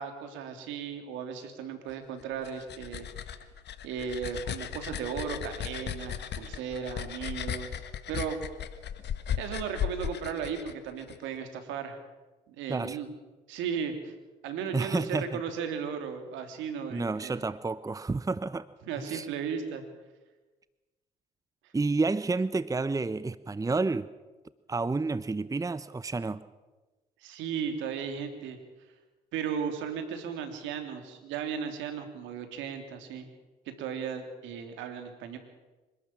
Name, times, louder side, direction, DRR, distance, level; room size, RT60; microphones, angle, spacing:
voice 1, 0.0-3.1 3.8-8.4 9.4-12.0 12.5-13.1 13.5-14.1 14.4-17.4 18.8-19.8 27.2-28.6 29.3-33.3 33.8-35.4, right 7 dB, 75° right, 6 dB, 3.1 m, -36 dB
sound 1, 2.2-11.2, left 9 dB, 60° left, 1.6 m, -36 dB
voice 2, 14.7-15.4 16.9-18.7 19.0-19.3 21.7-24.1 24.7-26.4, right 3 dB, 15° right, 16 dB, 0.8 m, -30 dB
26.0 x 12.5 x 8.6 m, 1.2 s
hypercardioid pair, 55°, 20 cm